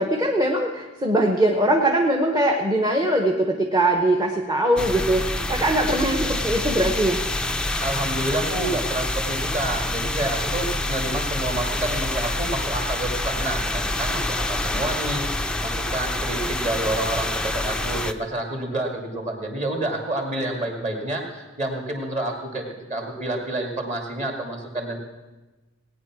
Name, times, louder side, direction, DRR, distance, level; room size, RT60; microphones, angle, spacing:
voice 1, 0.0-7.2, right 1 dB, 20° right, 1 dB, 0.9 m, -21 dB
sound 1, 4.8-18.1, left 1 dB, 5° left, 0.4 m, -27 dB
voice 2, 7.8-22.6 22.9-25.0, right 1 dB, 35° right, 2 dB, 2.3 m, -29 dB
18.5 x 9.5 x 6.1 m, 1.2 s
head